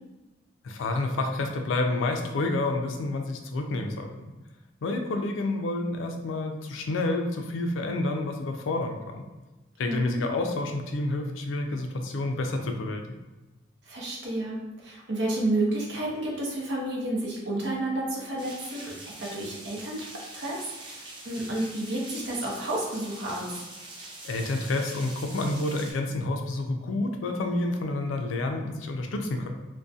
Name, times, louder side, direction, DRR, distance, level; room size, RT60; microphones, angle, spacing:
voice 1, 0.6-4.1 4.8-9.3 9.8-13.1 24.2-29.5, left 2 dB, 90° left, 4 dB, 0.4 m, -29 dB
voice 2, 9.8-10.2 13.9-23.5, right 1 dB, 65° right, -4 dB, 0.7 m, -31 dB
sound 1, 18.4-25.9, right 2 dB, 25° right, 0.4 m, -44 dB
2.3 x 2.1 x 2.6 m, 1.1 s
head